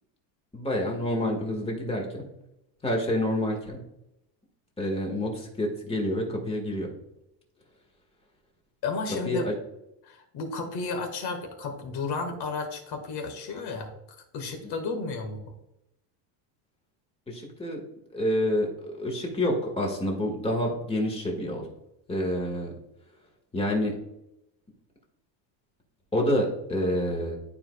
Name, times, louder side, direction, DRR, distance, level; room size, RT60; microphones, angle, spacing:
voice 1, 0.5-2.3 2.8-3.8 4.8-6.9 9.2-9.5 14.6-14.7 17.3-17.8 18.1-21.7 22.1-22.7 23.5-24.0 26.1-27.4, left 1 dB, 10° left, 0 dB, 1.7 m, -28 dB
voice 2, 8.8-9.5 10.0-13.9 14.3-15.4, left 4 dB, 50° left, 4 dB, 1.7 m, -33 dB
12.0 x 4.8 x 2.3 m, 0.86 s
cardioid pair, 155°, 49 cm